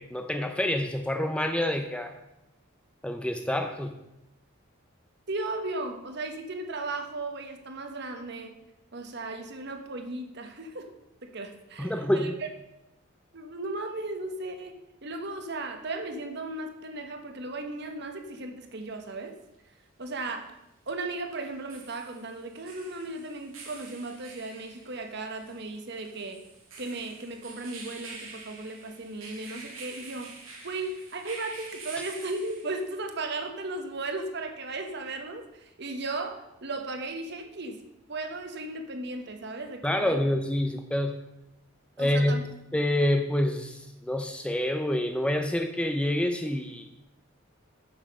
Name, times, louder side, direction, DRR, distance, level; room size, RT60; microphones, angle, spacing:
voice 1, 0.0-2.1 3.0-3.9 11.8-12.3 39.8-41.2 42.0-42.4 42.7-46.9, left 1 dB, 5° left, 6 dB, 0.6 m, -27 dB
voice 2, 5.3-8.5 8.9-10.9 11.2-12.5 13.3-19.4 20.0-20.5 20.9-26.4 26.8-30.3 30.6-37.8 38.1-40.2 42.0-42.5, right 2 dB, 55° right, 6 dB, 1.2 m, -36 dB
sound 1, 18.8-18.9 21.4-33.0, right 3 dB, 75° right, 2.3 m, -47 dB
7.3 x 7.3 x 6.5 m, 0.86 s
head